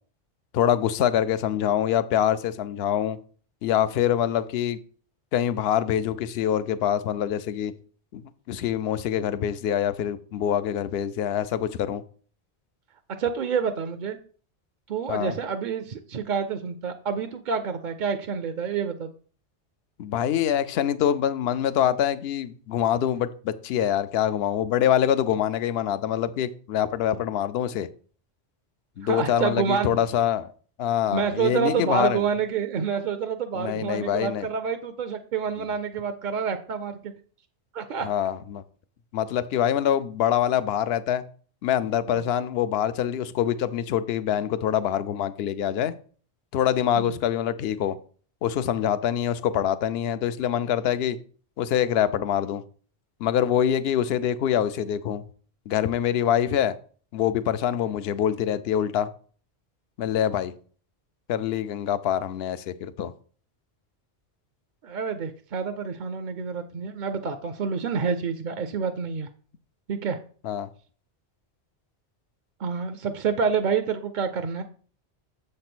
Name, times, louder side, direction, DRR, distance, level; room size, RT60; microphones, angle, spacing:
voice 1, 0.5-3.2 3.6-4.8 5.3-7.7 8.1-12.0 15.1-15.3 20.0-27.9 29.0-30.5 30.8-32.2 33.5-34.5 38.0-38.6 39.1-41.2 41.6-45.9 46.5-48.0 48.4-51.2 51.6-52.6 53.2-55.2 55.7-56.7 57.1-59.1 60.0-60.5 61.3-63.1 70.4-70.7, left 10 dB, 70° left, 0.8 m, -25 dB
voice 2, 13.2-14.2 14.9-19.1 29.0-29.9 31.1-37.1 37.7-38.1 42.1-42.2 47.0-47.1 64.8-69.3 69.9-70.2 72.6-74.6, right 6 dB, 55° right, 0.6 m, -28 dB
7.2 x 3.3 x 6.0 m
omnidirectional pair, 1.1 m